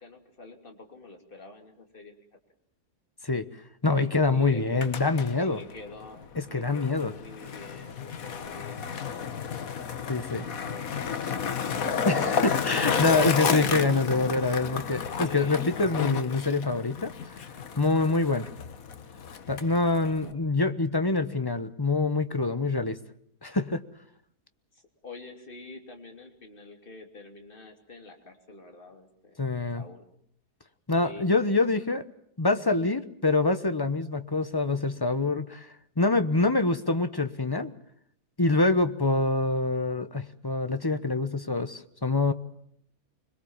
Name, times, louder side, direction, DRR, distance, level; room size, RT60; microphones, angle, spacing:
voice 1, 0.0-2.1 4.3-4.9 5.4-6.2 6.5-9.4 10.0-11.2 15.2-16.2 19.8-20.4 24.7-29.4 29.7-30.0 31.0-31.7, left 3 dB, 35° left, 4 dB, 3.1 m, -47 dB
voice 2, 3.8-5.6 6.4-7.1 10.1-10.5 12.0-17.1 17.8-18.5 19.5-23.0 23.4-23.8 29.4-29.8 30.9-32.0 32.4-37.7 38.4-42.3, left 3 dB, 15° left, 10 dB, 0.9 m, -25 dB
Skateboard, 4.6-20.3, left 7 dB, 60° left, 1.7 m, -32 dB
25.5 x 21.5 x 7.3 m, 0.69 s
omnidirectional pair, 1.7 m